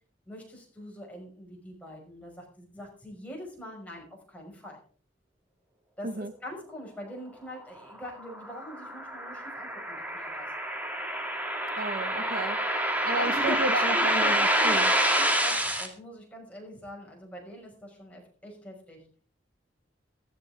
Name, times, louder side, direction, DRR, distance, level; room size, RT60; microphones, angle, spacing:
voice 1, 0.3-4.8 6.0-10.5 13.2-19.0, equal, 10° left, 5.8 m, -42 dB
sound 1, 8.0-15.9, right 1 dB, 10° right, 2.2 m, -27 dB
voice 2, 11.8-12.7 13.0-14.9, right 3 dB, 55° right, 0.7 m, -32 dB
15.0 x 13.5 x 3.7 m
head